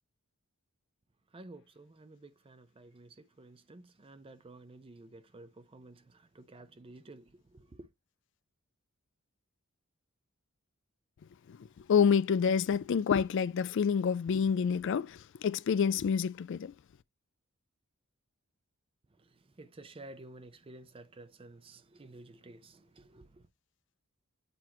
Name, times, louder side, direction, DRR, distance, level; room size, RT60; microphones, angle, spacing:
voice 1, 1.3-7.9 19.6-23.3, right 2 dB, 25° right, 0.4 m, -52 dB
voice 2, 11.9-16.7, left 6 dB, 55° left, 0.3 m, -28 dB
7.9 x 3.0 x 4.2 m
head